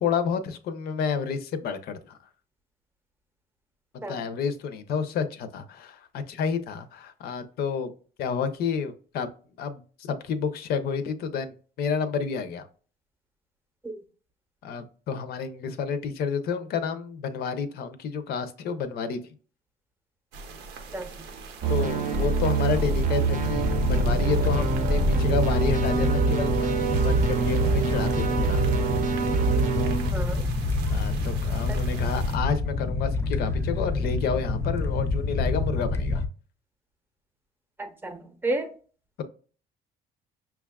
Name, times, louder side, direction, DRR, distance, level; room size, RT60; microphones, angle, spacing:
voice 1, 0.0-2.2 4.1-7.9 8.2-9.3 9.6-9.8 10.2-12.7 14.6-19.2 21.7-28.6 30.9-36.2, left 6 dB, 65° left, 10 dB, 0.5 m, -30 dB
sound 1, 20.3-32.4, right 4 dB, 90° right, 0.7 m, -43 dB
voice 2, 20.9-21.2 30.1-30.5 31.7-31.8 37.8-38.7, right 2 dB, 15° right, 5 dB, 0.7 m, -32 dB
sound 2, 21.6-30.1, right 5 dB, 50° right, 0.6 m, -25 dB
sound 3, 22.9-36.3, left 3 dB, 15° left, 0.3 m, -27 dB
5.6 x 2.3 x 2.2 m, 0.40 s
cardioid pair, 110°, 17 cm